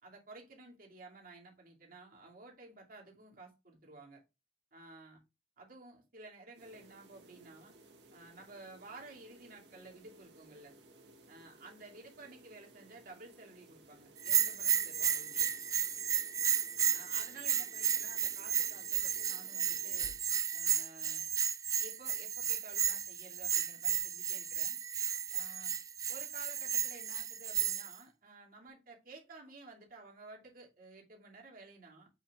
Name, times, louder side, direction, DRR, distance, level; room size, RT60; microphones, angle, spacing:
voice 1, 0.0-4.2 4.7-5.2 5.6-7.7 8.1-10.8 11.3-15.5 16.9-20.1 20.5-21.2 21.8-24.8 25.3-25.8 26.1-32.1, right 3 dB, 55° right, 2.6 m, -53 dB
sound 1, 6.5-20.3, right 1 dB, 85° right, 1.8 m, -60 dB
Bell, 14.2-28.0, right 8 dB, 20° right, 0.3 m, -33 dB
7.5 x 6.0 x 2.4 m
head